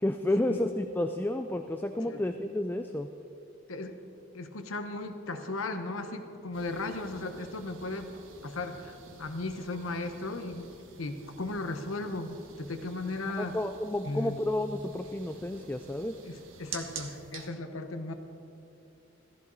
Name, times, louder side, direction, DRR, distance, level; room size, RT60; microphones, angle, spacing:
voice 1, 0.0-3.1 13.4-16.2, left 1 dB, 10° left, 7 dB, 0.3 m, -31 dB
voice 2, 4.3-8.1 8.4-10.7 11.0-13.6 14.0-14.4 16.2-18.1, left 2 dB, 85° left, 7 dB, 1.0 m, -36 dB
sound 1, 6.5-17.5, right 5 dB, 75° right, 1.3 m, -49 dB
15.0 x 14.5 x 4.0 m, 2.8 s
head